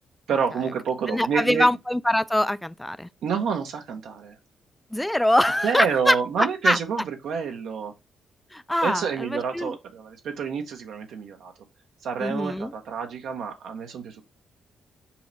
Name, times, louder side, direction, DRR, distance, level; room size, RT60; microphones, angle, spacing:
voice 1, 0.3-1.7 3.2-4.4 5.6-7.9 8.8-11.5 12.0-14.2, right 6 dB, 75° right, 0.7 m, -28 dB
voice 2, 1.1-3.1 4.9-6.8 8.5-9.8 12.2-12.7, left 1 dB, 10° left, 0.3 m, -23 dB
5.6 x 2.1 x 3.9 m
supercardioid pair, 50°, 0 cm